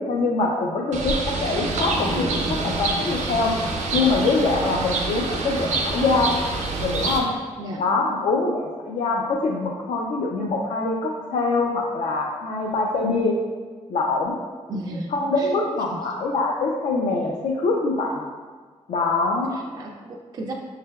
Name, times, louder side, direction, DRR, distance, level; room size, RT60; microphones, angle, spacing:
voice 1, 0.0-3.5 3.9-6.3 6.8-7.3 7.8-13.4 13.9-14.3 15.1-18.2 18.9-19.6, left 3 dB, 70° left, -1 dB, 0.5 m, -24 dB
Bird, 0.9-7.2, right 3 dB, 80° right, 0.8 m, -26 dB
voice 2, 14.7-15.5 15.9-16.0 19.5-20.5, right 1 dB, 35° right, -1 dB, 0.3 m, -34 dB
6.4 x 3.2 x 2.3 m, 1.5 s
wide cardioid pair, 165°, 12 cm